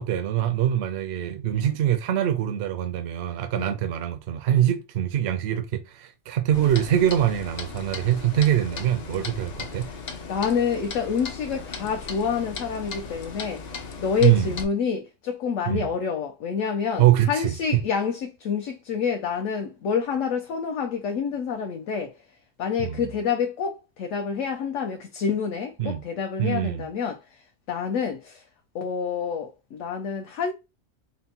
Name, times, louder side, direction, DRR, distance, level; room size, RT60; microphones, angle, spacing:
voice 1, 0.0-9.9 14.2-14.5 15.7-15.9 17.0-17.5 22.8-23.0 25.8-26.0 26.4-26.9, right 11 dB, 65° right, 0.7 m, -23 dB
Clock, 6.5-14.6, left 4 dB, 50° left, 0.5 m, -37 dB
voice 2, 10.3-22.1 22.6-27.4 27.7-28.4 28.7-30.5, left 6 dB, 70° left, 1.0 m, -28 dB
4.2 x 2.1 x 4.1 m
omnidirectional pair, 1.4 m